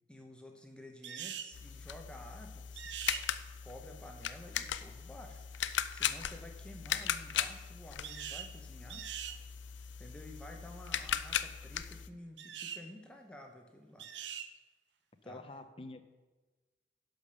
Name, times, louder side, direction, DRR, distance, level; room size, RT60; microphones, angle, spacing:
voice 1, 0.1-2.9 3.6-9.1 10.0-14.1 15.2-15.5, left 1 dB, 5° left, 2 dB, 0.9 m, -51 dB
sound 1, 1.0-1.5 2.8-3.2 8.0-8.5 8.9-9.4 12.4-12.8 14.0-14.5, right 9 dB, 70° right, 0.7 m, -42 dB
sound 2, 1.5-12.1, left 9 dB, 80° left, 0.5 m, -38 dB
voice 2, 15.2-16.0, left 2 dB, 30° left, 9 dB, 0.6 m, -47 dB
11.0 x 5.2 x 6.6 m, 1.2 s
head